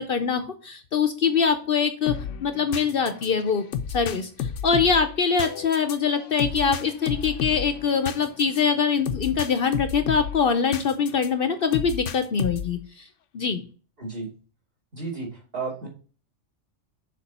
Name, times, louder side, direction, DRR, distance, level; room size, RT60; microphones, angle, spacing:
voice 1, 0.0-2.1 2.4-13.1 13.3-13.6, left 6 dB, 60° left, 8 dB, 0.8 m, -24 dB
sound 1, 2.1-11.3 11.7-12.8, left 8 dB, 85° left, 1.0 m, -32 dB
voice 2, 14.9-15.9, right 4 dB, 50° right, -1 dB, 3.1 m, -33 dB
6.9 x 4.6 x 4.2 m, 0.38 s
omnidirectional pair, 1.2 m